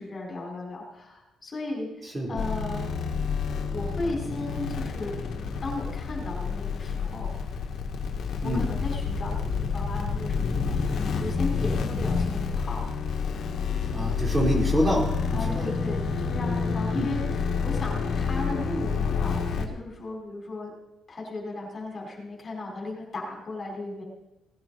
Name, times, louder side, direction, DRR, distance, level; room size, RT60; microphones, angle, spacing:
voice 1, 0.0-1.9 2.3-2.9 3.7-5.2 5.6-7.3 8.4-12.8 13.7-13.9 15.3-20.7 21.1-24.0, left 2 dB, 35° left, -1 dB, 4.7 m, -35 dB
sound 1, 2.4-19.7, left 5 dB, 65° left, 1.8 m, -28 dB
voice 2, 13.9-15.6 16.9-17.0, right 1 dB, 25° right, -2 dB, 3.8 m, -26 dB
18.5 x 10.5 x 4.2 m, 0.94 s
cardioid pair, 90°, 0 cm